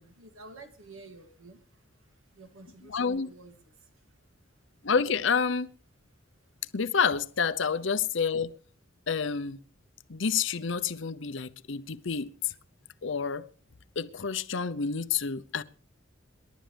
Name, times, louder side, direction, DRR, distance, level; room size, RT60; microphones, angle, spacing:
voice 1, 0.0-4.1 4.4-4.8 6.1-6.2, right 3 dB, 85° right, 2.6 m, -52 dB
voice 2, 2.9-3.3 4.8-5.7 6.7-8.5 9.1-9.6 10.1-12.3 13.0-13.5 14.0-15.6, left 6 dB, 65° left, 0.8 m, -28 dB
27.0 x 11.5 x 3.4 m
head